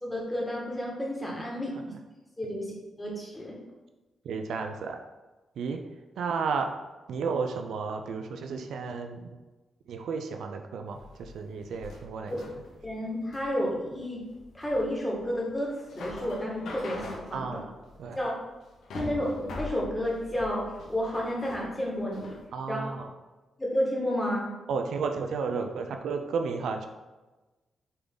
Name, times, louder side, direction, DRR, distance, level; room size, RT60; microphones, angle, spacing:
voice 1, 0.0-1.9 2.4-3.5 12.3-12.4 12.8-14.2 14.5-15.7 16.0-17.6 18.2-18.3 18.9-20.6 20.9-22.4 22.7-22.8 23.6-24.5, equal, 10° left, -4 dB, 1.9 m, -31 dB
voice 2, 1.4-2.0 4.2-5.0 5.6-5.8 6.2-6.7 7.1-9.2 9.9-12.3 17.3-17.7 18.0-18.2 22.5-23.1 24.7-26.9, right 5 dB, 80° right, 5 dB, 0.5 m, -32 dB
sound 1, 10.9-22.4, left 2 dB, 80° left, 1.3 m, -43 dB
6.8 x 3.6 x 3.9 m, 1.1 s
cardioid pair, 95°, 0 cm